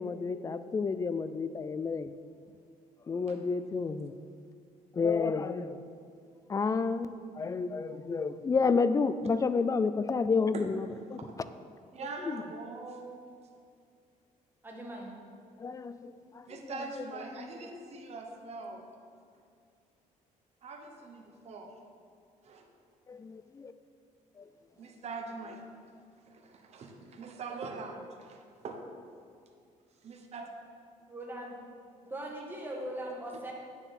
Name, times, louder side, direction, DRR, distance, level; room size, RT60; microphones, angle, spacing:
voice 1, 0.0-2.1 3.1-4.1 4.9-5.8 6.5-11.2 12.3-12.4 15.6-17.0 17.4-17.5 23.1-23.7 24.4-24.5, left 4 dB, 25° left, 12 dB, 0.4 m, -30 dB
voice 2, 11.9-13.2 16.5-18.9 20.6-21.7 22.4-22.7 24.8-25.6 26.3-28.8 30.0-30.5, right 4 dB, 50° right, 3 dB, 1.1 m, -43 dB
voice 3, 14.6-15.1 31.1-31.5 32.0-33.5, right 1 dB, 15° right, -1 dB, 1.6 m, -40 dB
9.1 x 7.1 x 4.3 m, 2.3 s
cardioid pair, 115°, 14 cm